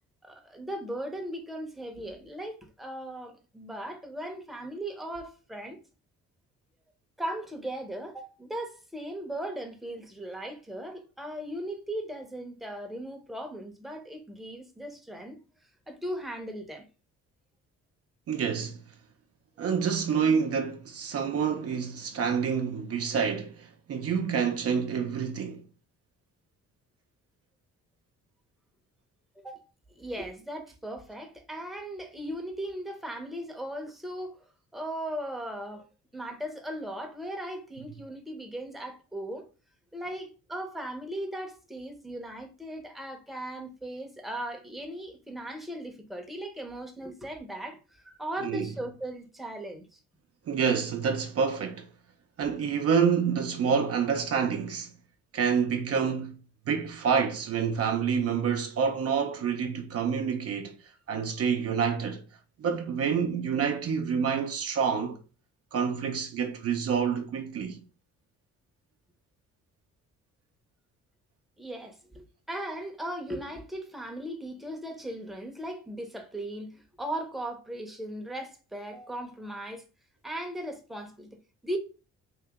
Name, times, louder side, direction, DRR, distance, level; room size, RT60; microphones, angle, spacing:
voice 1, 0.2-5.8 7.2-15.4 15.9-16.9 29.4-29.7 30.0-34.5 34.7-35.9 36.1-39.5 39.9-50.0 71.6-79.8 80.2-81.8, right 1 dB, ahead, 0.8 m, -38 dB
voice 2, 18.3-18.8 19.6-25.7 48.4-48.7 50.5-51.9 52.4-54.9 55.3-56.4 56.7-60.8 61.1-62.2 62.6-65.2 65.7-67.8, right 6 dB, 50° right, 0.6 m, -28 dB
3.0 x 2.7 x 3.6 m
cardioid pair, 90°, 30 cm